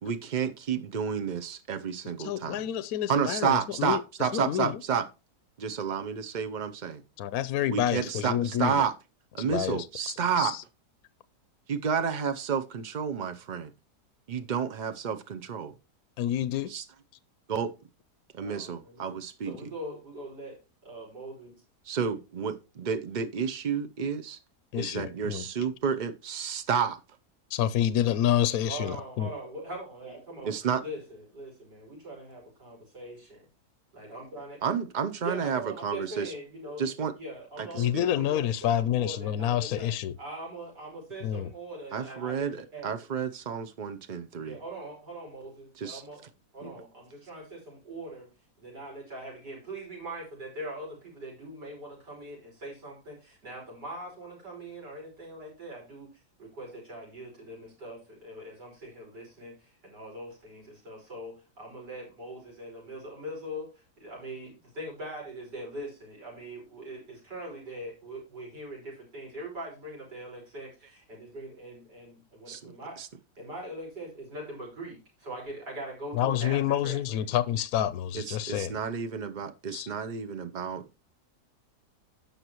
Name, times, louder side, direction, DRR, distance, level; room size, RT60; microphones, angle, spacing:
voice 1, 0.0-2.6 3.1-5.1 5.6-7.0 7.7-8.9 9.3-10.5 11.7-13.7 14.3-15.7 16.7-16.8 17.5-17.7 18.3-19.5 21.9-24.4 24.8-27.0 30.4-30.8 34.6-36.3 36.8-37.1 37.6-38.0 41.9-44.6 45.8-46.0 46.6-46.7 72.5-72.7 73.0-73.1 78.1-81.0, right 7 dB, 60° right, 0.4 m, -31 dB
voice 2, 2.2-4.8 7.2-8.8 9.5-10.6 16.2-16.7 24.7-25.5 27.5-29.3 37.8-40.2 41.2-41.5 76.1-78.8 79.7-79.9, left 11 dB, 70° left, 1.0 m, -28 dB
voice 3, 18.4-19.0 19.4-21.6 28.7-30.5 30.8-33.4 33.9-34.6 35.2-36.9 37.2-39.9 40.2-43.0 44.4-46.2 46.5-48.3 48.6-56.1 56.4-73.0 73.4-77.3, right 1 dB, 90° right, 5.9 m, -42 dB
16.0 x 5.8 x 3.0 m
omnidirectional pair, 1.8 m